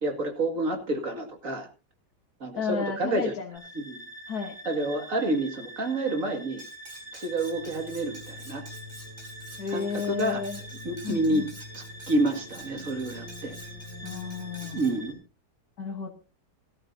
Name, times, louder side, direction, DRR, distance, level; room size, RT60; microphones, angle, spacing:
voice 1, 0.0-1.7 2.4-3.3 3.8-4.0 4.7-6.6 7.1-8.6 9.7-10.4 10.8-11.5 11.7-13.6 14.7-15.2, right 2 dB, 55° right, 5 dB, 2.6 m, -29 dB
voice 2, 2.5-3.6 4.3-4.6 9.6-10.6 11.0-11.5 14.0-14.8 15.8-16.1, left 5 dB, 65° left, 2 dB, 1.9 m, -32 dB
sound 1, 3.6-15.1, equal, 5° left, 4.1 m, -43 dB
Cutlery silverware, 6.6-15.0, right 1 dB, 25° right, 3.4 m, -50 dB
18.0 x 14.0 x 2.7 m, 0.31 s
omnidirectional pair, 1.8 m